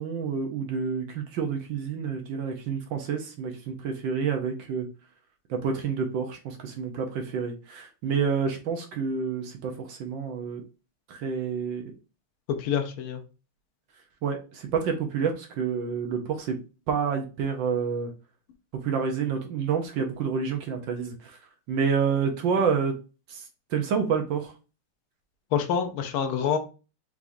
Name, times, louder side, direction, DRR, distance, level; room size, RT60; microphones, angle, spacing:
voice 1, 0.0-4.9 5.5-10.6 11.1-11.8 14.2-16.6 16.9-18.1 18.7-21.4 21.7-23.0 23.3-24.5, right 6 dB, 70° right, 1.3 m, -28 dB
voice 2, 12.5-13.2 25.5-26.6, left 7 dB, 75° left, 1.5 m, -26 dB
4.7 x 3.5 x 2.6 m
omnidirectional pair, 2.4 m